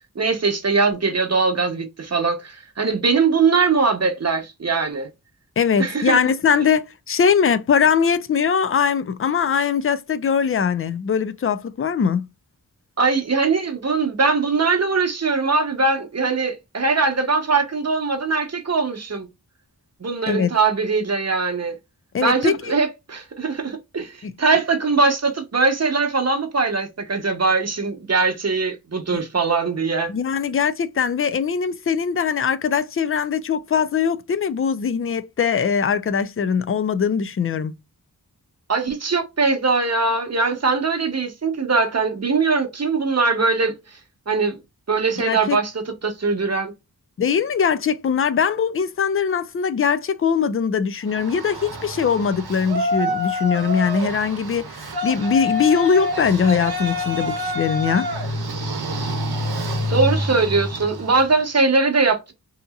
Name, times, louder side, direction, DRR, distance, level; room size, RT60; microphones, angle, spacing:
voice 1, 0.2-5.1 5.8-6.2 13.0-19.3 20.0-21.7 22.2-30.1 38.7-43.7 44.3-44.6 44.9-46.7 59.9-62.3, right 4 dB, 45° right, 0.9 m, -21 dB
voice 2, 5.6-12.3 20.3-20.5 22.1-22.7 24.2-24.3 29.1-29.2 30.1-37.7 45.3-45.6 47.2-58.3, left 6 dB, 35° left, 0.4 m, -21 dB
Yell, 51.1-61.3, left 1 dB, 90° right, 0.8 m, -27 dB
2.8 x 2.6 x 2.2 m
wide cardioid pair, 70°, 37 cm